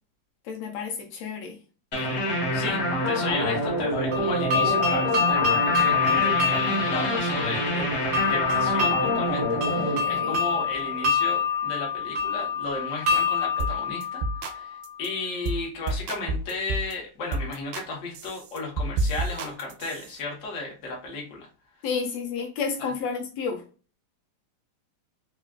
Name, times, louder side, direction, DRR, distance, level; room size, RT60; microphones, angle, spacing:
voice 1, 0.4-1.6 1.9-2.2 9.8-10.4 21.8-23.7, left 5 dB, 75° left, 1.6 m, -31 dB
sound 1, 1.9-11.3, equal, 55° left, 1.0 m, -27 dB
voice 2, 2.5-21.5, left 3 dB, 90° left, 0.7 m, -34 dB
sound 2, 4.1-14.9, left 6 dB, 65° right, 0.9 m, -26 dB
sound 3, 13.6-13.8 14.0-14.6 14.8-15.1 15.4-15.6 15.9-16.9 17.3-17.9 18.1-20.2, right 2 dB, 85° right, 2.1 m, -29 dB
4.9 x 2.4 x 2.3 m
omnidirectional pair, 3.5 m